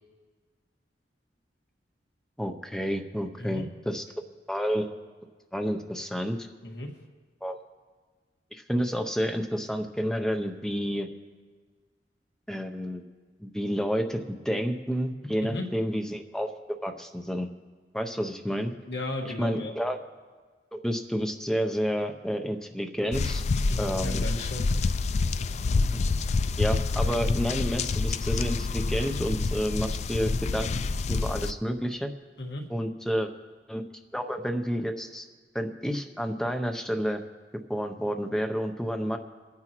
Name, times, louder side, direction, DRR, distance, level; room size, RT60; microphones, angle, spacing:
voice 1, 2.4-4.0 4.5-4.9 5.5-6.5 7.4-7.6 8.5-11.1 12.5-13.0 13.4-17.5 17.9-18.7 19.4-20.0 20.7-23.4 23.8-24.2 26.6-30.7 31.1-32.1 32.7-33.3 33.7-33.8 34.1-35.3 35.5-37.2 37.7-39.2, equal, 5° left, 5 dB, 0.6 m, -30 dB
voice 2, 6.6-6.9 15.4-15.7 18.9-19.7 23.7-24.6 32.4-32.6, left 1 dB, 70° left, 1 dB, 1.8 m, -34 dB
sound 1, 23.1-31.5, left 3 dB, 40° left, 0.3 m, -27 dB
28.0 x 9.7 x 3.0 m, 1.5 s
head